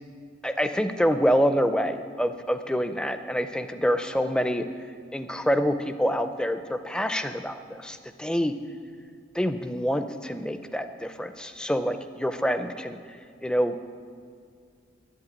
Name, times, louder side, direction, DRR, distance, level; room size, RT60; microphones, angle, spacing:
voice 1, 0.4-4.6 5.1-8.5 9.3-13.0 13.4-13.7, equal, 5° left, 9 dB, 0.4 m, -26 dB
11.0 x 8.1 x 9.9 m, 2.2 s
head